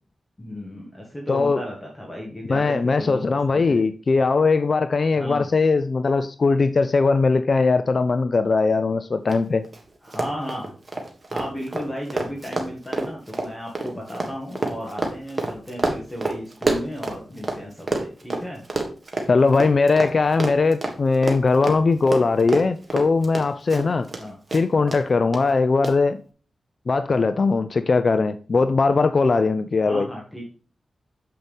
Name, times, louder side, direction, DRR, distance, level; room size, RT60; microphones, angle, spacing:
voice 1, 0.4-3.8 5.1-5.5 10.0-10.7 11.3-18.6 24.2-24.4 29.9-30.4, equal, 15° left, -1 dB, 1.8 m, -34 dB
voice 2, 1.3-1.6 2.5-9.6 19.3-24.1 24.5-26.2 26.9-30.1, left 4 dB, 50° left, 11 dB, 0.4 m, -20 dB
Run, 9.3-9.4 9.6-9.8 10.1-17.6 17.9-24.2 24.5-25.0 25.3-25.4 25.8-25.9, right 2 dB, 35° right, 1.6 m, -27 dB
7.6 x 5.5 x 3.5 m, 0.39 s
cardioid pair, 75°, 0 cm